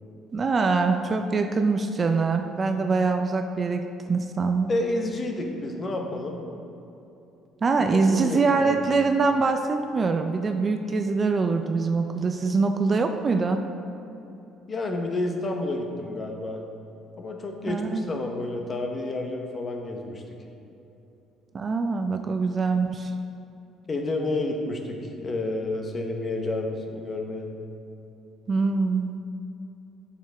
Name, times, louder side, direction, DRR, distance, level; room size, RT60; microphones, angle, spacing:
voice 1, 0.3-4.7 7.6-13.6 17.7-18.1 21.5-23.1 28.5-29.1, right 4 dB, 30° right, 6 dB, 0.3 m, -24 dB
voice 2, 4.7-6.4 7.9-8.8 14.7-16.6 17.2-20.2 23.9-27.5, left 2 dB, 30° left, 3 dB, 0.8 m, -30 dB
8.7 x 6.7 x 3.3 m, 2.8 s
cardioid pair, 135°, 0 cm